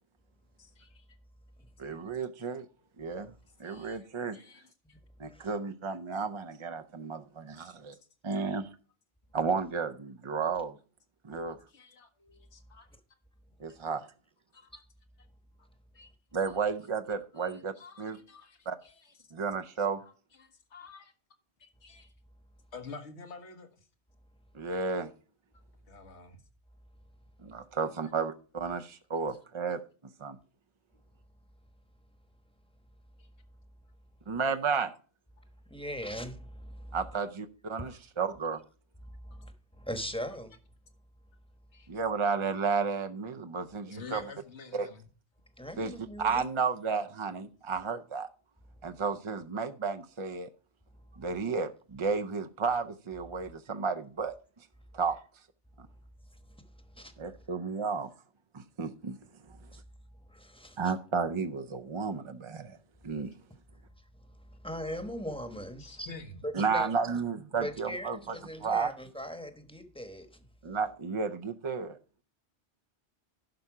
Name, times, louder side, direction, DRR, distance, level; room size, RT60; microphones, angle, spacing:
voice 1, 0.6-1.1 2.0-2.1 3.6-5.0 7.6-7.8 8.3-8.4 11.3-11.4 11.7-12.9 14.5-14.8 15.2-15.3 15.6-15.7 15.9-16.1 16.5-16.6 17.3-19.3 20.0-21.1 21.6-22.1 22.7-23.9 25.9-26.4 28.0-28.1 28.8-28.9 29.5-29.6 33.2-33.3 41.7-41.9 43.9-45.1 65.8-66.4, left 4 dB, 85° left, 1.6 m, -50 dB
voice 2, 1.8-2.7 3.0-3.3 3.6-4.4 5.2-7.9 8.2-8.7 9.3-10.8 11.2-11.6 13.6-14.1 16.3-18.2 18.7-18.8 19.3-20.0 24.5-25.1 27.4-29.8 30.2-30.4 34.3-34.9 36.9-38.6 41.9-44.2 44.7-44.9 45.8-45.9 46.2-48.3 48.8-50.5 51.2-54.3 54.9-55.2 55.8-55.9 57.2-58.1 58.5-59.2 59.5-59.6 60.8-62.8 63.0-63.3 66.5-69.0 70.6-72.0, right 5 dB, 40° right, 0.4 m, -32 dB
voice 3, 35.7-36.9 37.8-38.0 39.2-39.5 39.8-40.6 45.6-46.4 56.9-57.1 59.7-59.8 60.3-60.8 64.6-66.1 66.4-66.9 67.5-70.4, equal, 5° left, 1.0 m, -39 dB
11.5 x 5.6 x 4.8 m
omnidirectional pair, 1.1 m